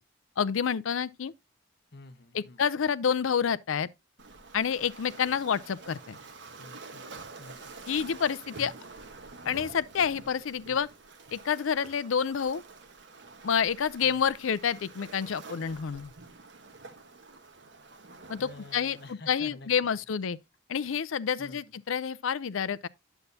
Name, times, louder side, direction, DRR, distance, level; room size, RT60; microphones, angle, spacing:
voice 1, 0.4-1.3 2.3-3.9 4.5-6.2 7.9-8.7 9.4-10.9 11.3-12.6 13.4-16.1 18.3-20.4 20.7-22.9, left 7 dB, 85° left, 0.5 m, -28 dB
voice 2, 1.9-2.6 6.6-7.7 10.7-10.8 14.0-14.2 18.4-19.7 21.4-21.6, left 2 dB, 55° left, 1.1 m, -49 dB
Waves surf, 4.2-19.1, right 3 dB, 65° right, 1.2 m, -48 dB
9.9 x 8.1 x 2.7 m
head